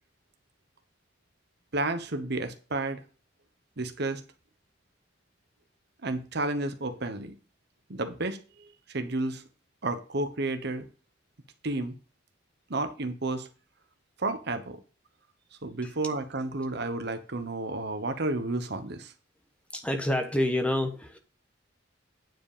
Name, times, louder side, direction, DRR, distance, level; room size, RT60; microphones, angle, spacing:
voice 1, 1.7-3.0 3.8-4.2 6.0-7.4 7.9-9.4 9.8-10.9 11.6-11.9 12.7-13.5 14.2-14.8 15.6-19.1, right 2 dB, 60° right, 1.1 m, -31 dB
voice 2, 19.7-21.2, left 1 dB, 5° left, 1.1 m, -28 dB
9.3 x 5.1 x 5.0 m
head